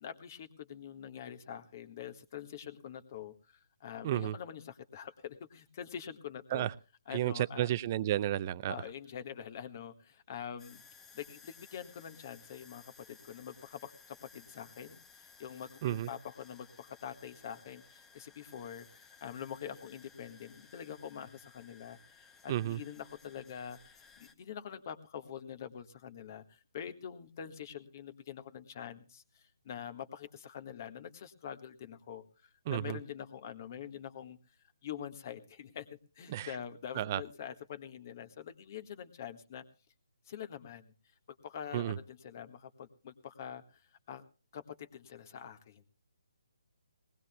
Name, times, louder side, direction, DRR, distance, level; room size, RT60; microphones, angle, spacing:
voice 1, 0.0-6.7 7.1-7.7 8.7-10.8 11.1-34.4 34.8-35.9 36.1-39.6 40.2-40.9 41.3-43.8 44.1-44.2 44.5-45.8, left 9 dB, 40° left, 1.6 m, -45 dB
voice 2, 4.0-4.4 6.5-6.7 7.1-8.7 15.8-16.1 22.5-22.8 32.7-33.0 36.3-36.5 36.9-37.2 41.7-42.0, right 13 dB, 30° right, 0.6 m, -32 dB
sound 1, 10.6-24.3, left 5 dB, 10° left, 0.9 m, -59 dB
21.0 x 19.0 x 2.3 m
figure-of-eight pair, 145°, 3 cm